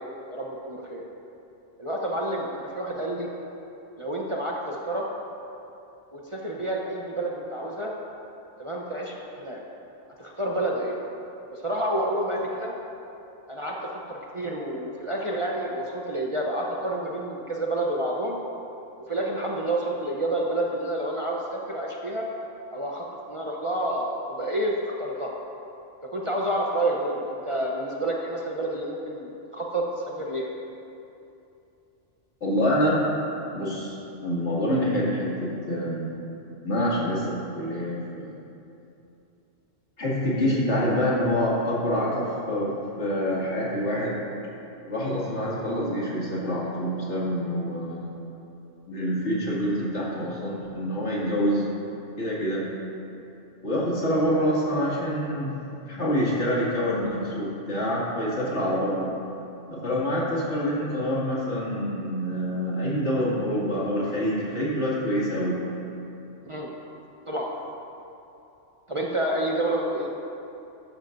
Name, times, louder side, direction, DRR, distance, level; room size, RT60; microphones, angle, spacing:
voice 1, 0.3-1.0 1.8-2.5 2.7-3.3 4.0-5.0 6.1-7.9 8.6-9.6 10.2-11.0 11.5-12.7 13.5-18.4 19.1-22.2 22.7-25.3 26.1-29.8 30.2-30.4 66.5-66.7 67.3-67.5 68.9-70.2, right 1 dB, 30° right, -3 dB, 0.8 m, -29 dB
voice 2, 32.4-33.0 33.5-36.1 36.6-38.3 40.0-44.3 44.8-48.1 48.9-51.6 52.2-52.7 53.6-55.5 55.8-59.1 59.7-65.6, equal, 65° left, -7 dB, 2.7 m, -26 dB
14.5 x 12.0 x 2.6 m, 2.8 s
omnidirectional pair, 1.3 m